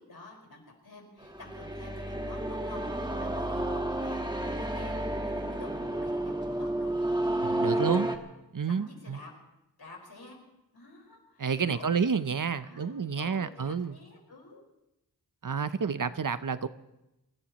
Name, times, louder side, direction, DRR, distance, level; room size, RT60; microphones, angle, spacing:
voice 1, 0.0-4.2 4.5-7.9 8.7-9.3 9.8-10.4 10.7-12.0 12.6-14.6, left 2 dB, 70° left, -1 dB, 5.0 m, -49 dB
sound 1, 1.2-8.2, right 1 dB, 10° right, 1.5 m, -31 dB
voice 2, 7.4-8.1 8.5-9.2 11.4-14.0 15.4-16.7, right 6 dB, 55° right, 13 dB, 0.7 m, -29 dB
27.5 x 17.0 x 3.0 m, 0.91 s
wide cardioid pair, 70°, 39 cm